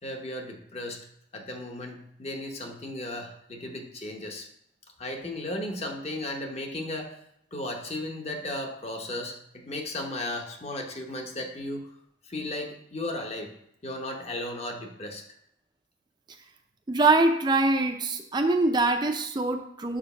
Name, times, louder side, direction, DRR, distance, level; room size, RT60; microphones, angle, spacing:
voice 1, 0.0-1.0 1.3-4.5 5.0-7.2 7.5-11.9 12.2-13.5 13.8-15.2, left 1 dB, 30° left, 3 dB, 0.9 m, -35 dB
voice 2, 16.9-20.0, right 2 dB, 20° right, 4 dB, 0.4 m, -23 dB
5.1 x 4.6 x 5.4 m, 0.74 s
head